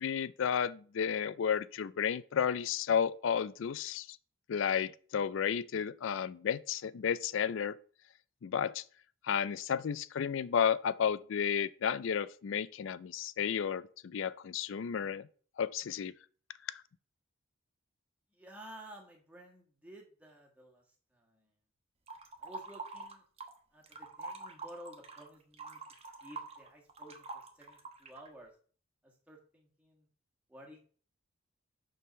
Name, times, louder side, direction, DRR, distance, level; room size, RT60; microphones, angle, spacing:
voice 1, 0.0-4.2 4.5-7.7 8.4-8.8 9.2-15.3 15.6-16.1 16.7-16.8, left 7 dB, 60° left, 0.4 m, -32 dB
voice 2, 18.3-21.5 22.4-23.2 23.7-25.8 26.2-28.6 29.0-30.1 30.5-30.8, right 1 dB, 5° right, 1.4 m, -53 dB
sound 1, 22.1-23.6 23.8-28.3, right 3 dB, 30° right, 1.0 m, -45 dB
6.7 x 3.7 x 6.2 m
head